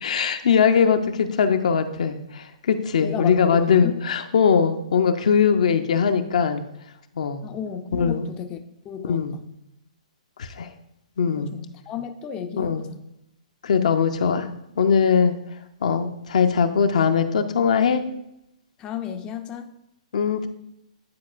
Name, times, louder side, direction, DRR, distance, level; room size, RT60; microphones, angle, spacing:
voice 1, 0.0-6.6 7.2-7.4 7.9-8.3 9.0-9.4 10.4-10.7 11.2-11.5 12.6-12.8 13.6-14.5 14.8-15.3 15.8-18.0 20.1-20.5, left 6 dB, 70° left, 7 dB, 0.6 m, -21 dB
voice 2, 3.0-3.9 7.4-8.6 8.8-9.4 11.3-13.0 18.8-19.7, left 8 dB, 25° left, 6 dB, 0.4 m, -33 dB
9.5 x 4.3 x 2.4 m, 0.81 s
hypercardioid pair, 135°, 4 cm